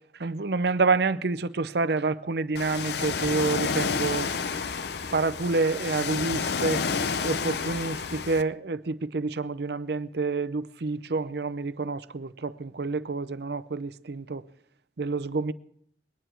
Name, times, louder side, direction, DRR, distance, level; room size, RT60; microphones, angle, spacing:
voice 1, 0.2-4.7 5.1-6.9 7.2-14.4 15.0-15.5, right 3 dB, 65° right, 0.6 m, -28 dB
Ocean, 2.6-8.4, left 5 dB, 65° left, 0.6 m, -30 dB
22.0 x 10.0 x 4.5 m
head